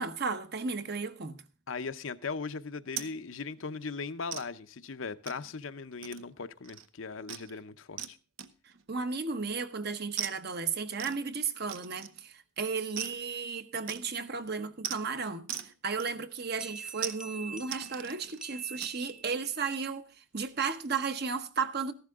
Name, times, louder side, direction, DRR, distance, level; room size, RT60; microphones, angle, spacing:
voice 1, 0.0-1.4 8.9-21.9, right 5 dB, 50° right, 1.0 m, -34 dB
voice 2, 1.7-8.2, left 4 dB, 70° left, 0.7 m, -38 dB
sound 1, 2.9-3.1 3.5-3.7 4.3-4.5 5.3-5.5 6.0-6.4 6.6-6.9 7.3-7.5 8.0-8.1 8.4-8.8 10.2-10.4 11.0-11.2 11.7-12.2 13.0-13.2 13.9-14.2 14.8-15.0 15.5-15.7 16.0-16.5 17.0-17.2 17.7-18.4 18.8-19.0, right 9 dB, 75° right, 0.8 m, -39 dB
sound 2, 16.6-19.5, right 4 dB, 5° right, 0.6 m, -46 dB
14.5 x 11.5 x 3.6 m
head